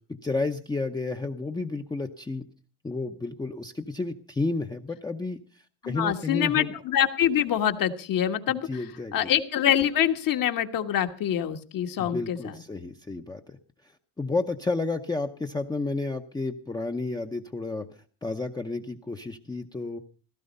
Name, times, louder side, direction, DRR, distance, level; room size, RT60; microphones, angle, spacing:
voice 1, 0.2-2.4 2.8-6.7 8.5-9.3 12.0-20.0, left 3 dB, 10° left, 5 dB, 0.7 m, -31 dB
voice 2, 5.8-8.7 9.1-12.5, left 10 dB, 55° left, 7 dB, 1.5 m, -25 dB
16.5 x 14.0 x 5.3 m, 0.39 s
cardioid pair, 150°, 40 cm